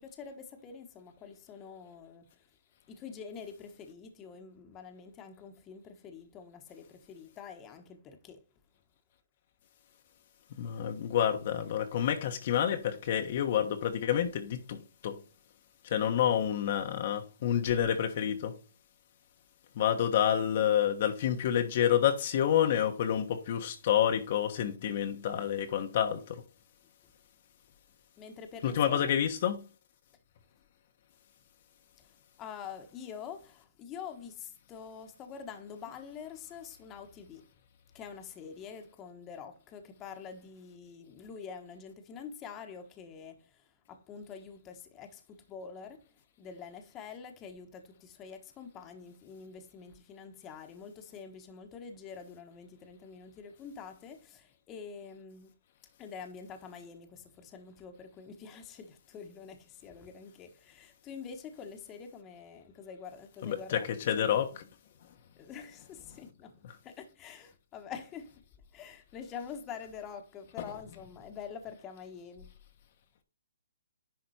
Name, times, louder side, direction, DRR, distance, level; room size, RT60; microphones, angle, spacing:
voice 1, 0.0-2.2 2.9-8.4 28.2-29.2 32.4-37.4 37.9-46.1 46.4-55.5 56.0-63.9 64.2-64.6 65.4-66.6 66.8-68.4 68.7-72.5, left 6 dB, 20° left, 1.3 m, -46 dB
voice 2, 10.6-15.2 15.8-18.6 19.8-26.4 28.6-29.7 63.4-64.6, left 9 dB, 45° left, 1.1 m, -28 dB
10.5 x 4.3 x 4.2 m
hypercardioid pair, 150°, 0 cm